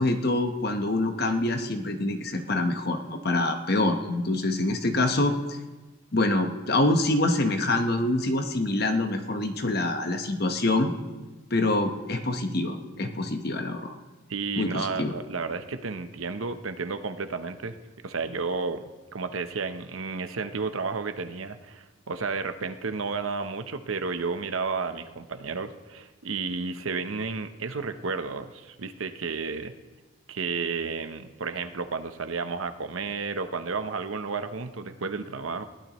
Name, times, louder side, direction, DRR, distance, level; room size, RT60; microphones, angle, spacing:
voice 1, 0.0-5.6 6.1-10.9 11.5-13.9 14.6-15.1, left 2 dB, 50° left, 6 dB, 1.1 m, -25 dB
voice 2, 14.3-17.8 18.0-29.7 30.3-35.6, right 4 dB, 90° right, 9 dB, 0.9 m, -32 dB
21.0 x 16.0 x 3.1 m, 1.2 s
head